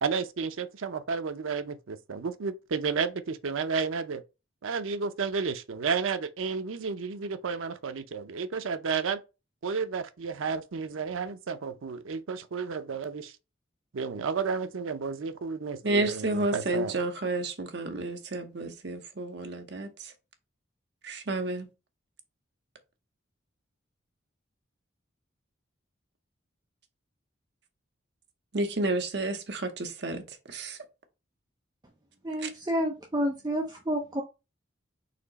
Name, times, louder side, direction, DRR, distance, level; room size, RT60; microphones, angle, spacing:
voice 1, 0.0-4.2 4.6-9.2 9.6-13.3 13.9-17.0, right 5 dB, 85° right, 0.5 m, -32 dB
voice 2, 15.8-19.9 21.0-21.7 28.5-30.2 30.5-30.8 32.4-32.5, right 2 dB, 55° right, 0.8 m, -30 dB
voice 3, 32.2-34.2, equal, 20° right, 0.6 m, -29 dB
4.3 x 2.9 x 4.0 m
head